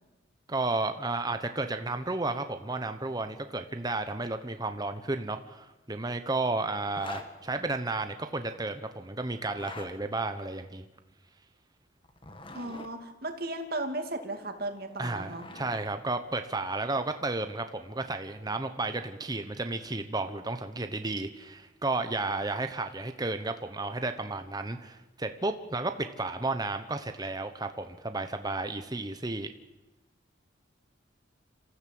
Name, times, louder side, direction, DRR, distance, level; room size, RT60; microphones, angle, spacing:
voice 1, 0.5-10.8 15.0-29.5, right 2 dB, 20° right, 8 dB, 1.0 m, -33 dB
Zipper (clothing), 6.9-7.3 9.4-9.9 12.0-12.9 14.8-15.9, left 2 dB, 25° left, 1.7 m, -44 dB
voice 2, 12.5-15.5, right 2 dB, 50° right, 5 dB, 2.5 m, -35 dB
26.5 x 14.5 x 7.8 m, 1.0 s
head